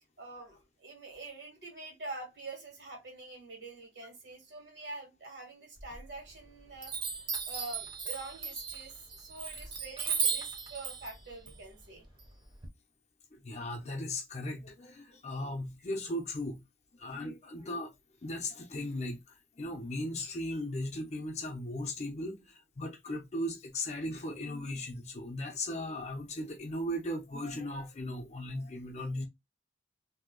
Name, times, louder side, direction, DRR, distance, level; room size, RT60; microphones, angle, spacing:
voice 1, 0.2-7.1 7.5-12.1, right 3 dB, 75° right, 1.5 m, -46 dB
Chime, 5.8-6.4 6.8-12.7, right 6 dB, 30° right, 0.7 m, -36 dB
voice 2, 13.3-16.6 17.0-17.9 18.2-19.2 19.6-29.3, left 1 dB, 40° left, 0.6 m, -37 dB
2.7 x 2.1 x 3.7 m
head